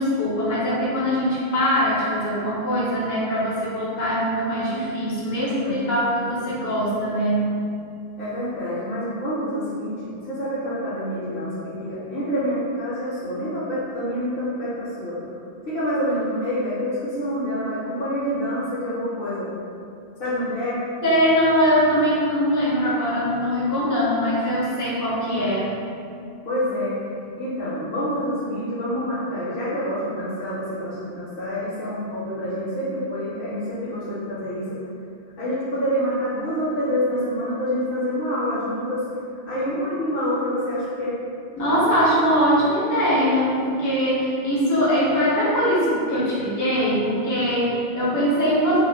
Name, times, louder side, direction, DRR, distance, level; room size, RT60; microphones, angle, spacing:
voice 1, 0.0-7.5 21.0-25.7 41.6-48.8, equal, 25° left, -8 dB, 0.5 m, -22 dB
voice 2, 5.4-6.3 8.2-15.2 15.7-19.5 20.2-20.8 26.4-27.0 27.4-34.8 35.4-39.0 39.5-41.2, equal, 65° left, -10 dB, 0.8 m, -27 dB
2.3 x 2.1 x 3.3 m, 2.6 s
omnidirectional pair, 1.1 m